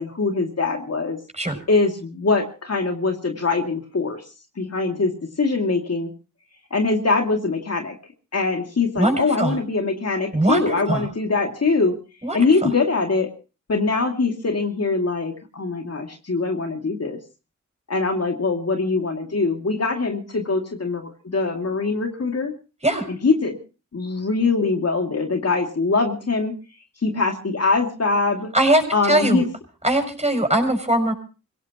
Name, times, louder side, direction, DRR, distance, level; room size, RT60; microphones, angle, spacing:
voice 1, 0.0-1.2 1.7-4.2 4.6-5.1 5.4-6.1 6.7-7.9 8.3-12.0 12.3-13.3 13.7-17.2 17.9-22.5 23.1-23.6 23.9-26.5 27.0-28.5 28.9-29.5, left 3 dB, 55° left, 3 dB, 2.5 m, -22 dB
voice 2, 9.0-9.6 10.3-11.0 12.2-12.7 22.8-23.1 28.5-28.8 29.1-29.4 29.8-31.1, right 1 dB, 20° right, 5 dB, 6.8 m, -20 dB
26.0 x 17.0 x 3.0 m, 0.33 s
cardioid pair, 45°, 31 cm